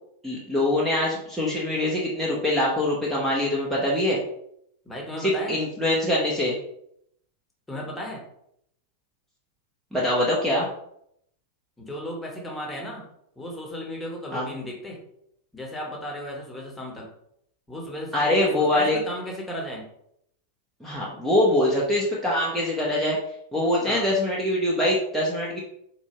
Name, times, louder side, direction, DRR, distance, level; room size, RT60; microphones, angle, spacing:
voice 1, 0.2-4.2 5.2-6.6 9.9-10.7 14.3-14.5 18.1-19.0 20.8-23.2 23.5-25.6, left 1 dB, 10° right, -5 dB, 0.8 m, -23 dB
voice 2, 4.8-5.6 7.7-8.2 11.8-13.1 13.4-15.0 15.5-17.1 17.7-19.9 23.9-24.1, equal, 10° left, -1 dB, 1.1 m, -35 dB
4.2 x 2.6 x 2.9 m, 0.73 s
figure-of-eight pair, 90°, 0 cm